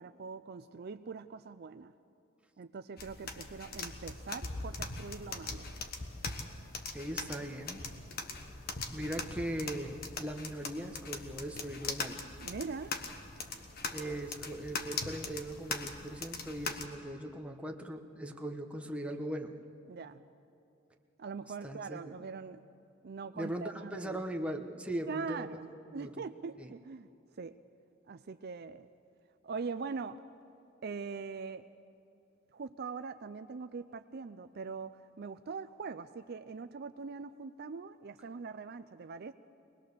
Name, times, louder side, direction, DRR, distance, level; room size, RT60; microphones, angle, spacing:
voice 1, 0.0-1.9 2.6-5.7 12.4-12.9 19.9-20.2 21.2-22.6 23.0-24.2 25.1-25.7 25.9-27.1 27.4-27.6 28.1-28.9 29.4-30.2 30.8-31.6 32.5-39.3, right 5 dB, 50° right, 10 dB, 0.5 m, -42 dB
sound 1, 3.0-16.9, left 4 dB, 50° left, 1.3 m, -41 dB
voice 2, 6.9-7.8 8.9-12.2 13.9-19.5 21.6-22.1 23.3-26.2 26.6-26.7, right 1 dB, 5° right, 2 dB, 1.1 m, -39 dB
23.0 x 20.0 x 6.8 m, 2.7 s
head